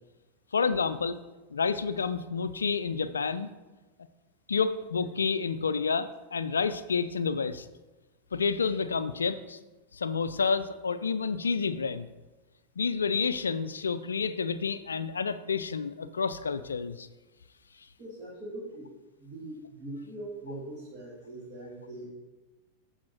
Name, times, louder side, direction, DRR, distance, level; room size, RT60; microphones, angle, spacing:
voice 1, 0.5-1.2 1.5-3.5 4.5-7.7 8.3-9.6 9.9-12.1 12.8-17.1, left 5 dB, 70° left, 13 dB, 0.3 m, -29 dB
voice 2, 18.0-18.9 19.2-22.1, right 1 dB, 35° right, -8 dB, 2.5 m, -41 dB
14.5 x 4.9 x 3.0 m, 1.2 s
figure-of-eight pair, 90°, 0 cm